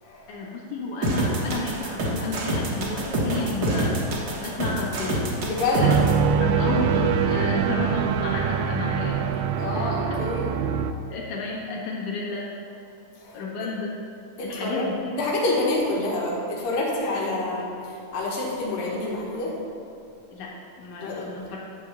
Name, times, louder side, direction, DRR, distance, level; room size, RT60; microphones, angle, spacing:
voice 1, 0.3-5.3 5.7-6.0 6.4-9.3 9.8-10.2 11.1-12.5 13.3-14.0 14.4-15.1 17.1-17.5 20.3-21.6, left 3 dB, 65° left, -4 dB, 2.8 m, -32 dB
sound 1, 1.0-6.1, right 1 dB, 65° right, 1.0 m, -26 dB
voice 2, 5.4-5.9 9.6-10.5 13.2-13.4 14.4-14.9 15.1-19.6 21.0-21.2, left 2 dB, 85° left, -4 dB, 3.2 m, -27 dB
sound 2, 5.8-10.9, right 7 dB, 80° right, 1.8 m, -23 dB
11.5 x 4.6 x 6.8 m, 2.7 s
omnidirectional pair, 3.9 m